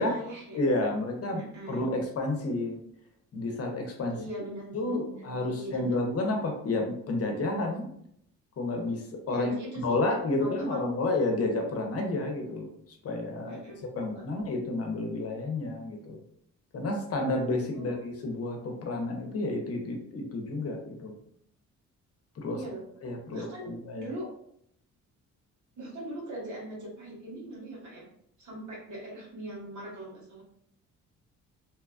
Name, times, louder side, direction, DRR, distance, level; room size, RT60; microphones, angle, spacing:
voice 1, 0.0-0.6 1.3-1.9 4.1-5.9 9.3-10.0 10.4-10.9 13.4-14.2 17.7-18.1 22.5-22.8 23.3-24.3 25.7-28.0 28.4-30.4, right 1 dB, 75° right, -4 dB, 1.4 m, -41 dB
voice 2, 0.5-1.4 1.7-2.8 3.3-4.2 4.7-7.9 8.6-12.7 13.0-13.6 14.0-16.2 16.7-21.1 22.4-22.6 23.0-24.1, left 2 dB, 50° left, 2 dB, 0.7 m, -30 dB
2.8 x 2.2 x 2.3 m, 0.70 s
cardioid pair, 90°, 30 cm